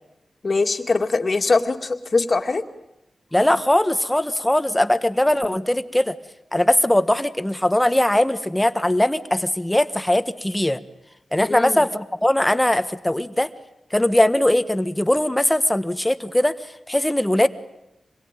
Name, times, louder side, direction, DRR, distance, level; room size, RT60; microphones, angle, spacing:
voice 1, 0.4-2.6 11.5-11.8, left 3 dB, 45° left, 7 dB, 2.1 m, -22 dB
voice 2, 3.3-6.2 6.5-10.8 11.3-13.5 13.9-17.5, left 1 dB, 10° left, 11 dB, 1.4 m, -20 dB
26.5 x 21.5 x 9.1 m, 0.89 s
cardioid pair, 65°, 0 cm